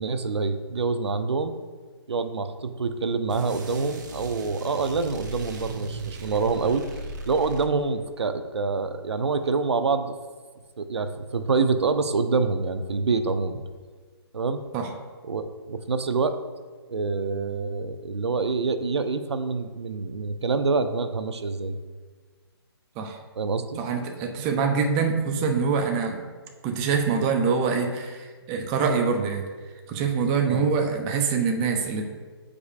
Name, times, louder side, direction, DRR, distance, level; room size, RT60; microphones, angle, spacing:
voice 1, 0.0-1.6 2.1-6.8 7.3-10.1 10.8-13.6 14.3-14.6 15.3-16.4 16.9-21.8 23.4-23.8 30.4-30.7, right 4 dB, 90° right, 9 dB, 0.5 m, -26 dB
sound 1, 3.3-8.1, right 2 dB, 45° right, 0.7 m, -38 dB
voice 2, 23.8-26.2 26.6-29.4 29.9-32.1, right 5 dB, 15° right, 3 dB, 0.3 m, -25 dB
8.1 x 4.9 x 2.4 m, 1.4 s
hypercardioid pair, 155°, 14 cm